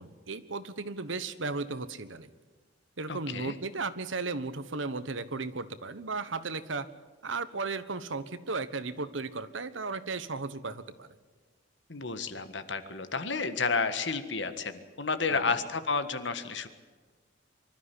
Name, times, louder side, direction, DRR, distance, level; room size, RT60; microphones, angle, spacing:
voice 1, 0.0-2.3 3.0-6.9 7.2-11.1 15.3-15.5, right 3 dB, 80° right, 12 dB, 1.3 m, -35 dB
voice 2, 3.1-3.5 11.9-16.7, left 4 dB, 65° left, 10 dB, 1.6 m, -31 dB
24.5 x 13.0 x 9.9 m, 1.4 s
head